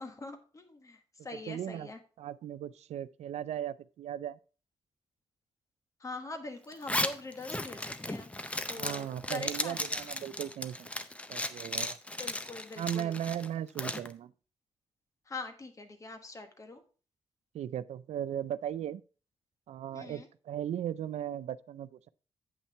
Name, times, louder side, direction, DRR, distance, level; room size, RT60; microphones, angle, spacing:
voice 1, 0.0-2.0 6.0-8.3 8.7-9.8 12.2-13.2 15.3-16.8 19.9-20.3, left 3 dB, 30° left, 1.2 m, -43 dB
voice 2, 1.5-1.9 2.2-4.4 8.8-10.9 11.3-12.0 12.8-14.3 17.5-19.0 19.7-22.1, right 10 dB, 90° right, 0.4 m, -37 dB
Zipper (clothing), 6.7-14.1, left 1 dB, 10° left, 0.6 m, -36 dB
8.6 x 5.7 x 4.4 m
wide cardioid pair, 155°, 11 cm